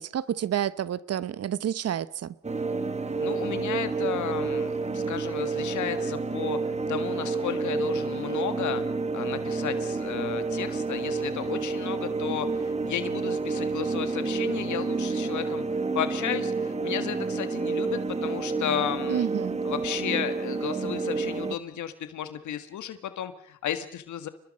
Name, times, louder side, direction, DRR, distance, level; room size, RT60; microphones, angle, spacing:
voice 1, 0.0-2.3 19.1-19.6, right 10 dB, 55° right, 1.0 m, -29 dB
sound 1, 2.4-21.6, right 4 dB, 20° right, 1.8 m, -29 dB
voice 2, 3.2-8.8 9.1-19.3 19.6-24.3, left 10 dB, 75° left, 1.7 m, -33 dB
29.5 x 20.5 x 5.4 m
cardioid pair, 90°, 30 cm